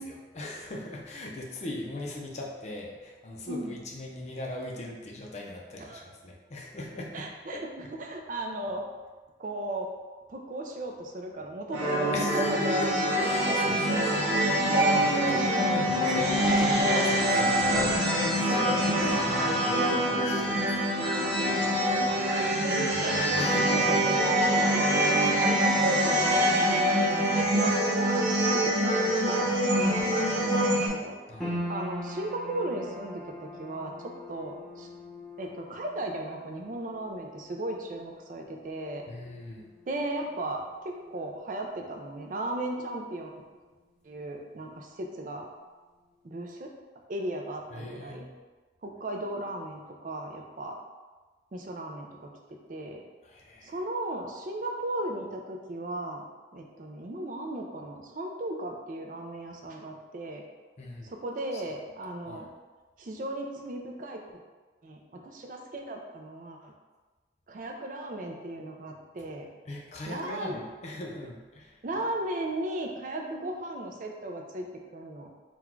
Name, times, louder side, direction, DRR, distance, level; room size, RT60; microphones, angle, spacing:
voice 1, 0.0-7.9 12.1-12.9 13.2-19.3 19.6-20.9 23.4-24.4 31.3-31.6 39.1-39.7 47.7-48.3 53.2-53.7 60.8-61.1 61.5-61.6 62.3-62.5 69.7-71.8, left 1 dB, 35° left, -1 dB, 0.5 m, -39 dB
voice 2, 3.5-3.8 5.8-6.0 7.1-7.7 8.0-8.8 9.4-9.9 10.3-12.6 15.0-15.7 19.1-20.1 21.6-22.3 23.0-23.5 24.0-29.0 29.3-31.2 31.7-34.9 35.4-39.1 39.9-43.3 44.0-45.5 46.2-46.7 47.1-48.3 48.8-50.8 51.5-52.3 52.7-53.0 53.6-56.2 56.5-60.4 61.0-62.5 63.0-64.2 64.8-66.7 67.5-69.5 70.1-70.6 71.8-74.7 74.9-75.3, right 1 dB, 45° right, 2 dB, 0.4 m, -36 dB
sound 1, 11.7-30.9, equal, 70° right, 0.9 m, -25 dB
sound 2, 31.4-43.8 44.1-45.0 45.5-45.6, left 1 dB, ahead, 0.7 m, -43 dB
4.0 x 2.3 x 4.4 m, 1.3 s
head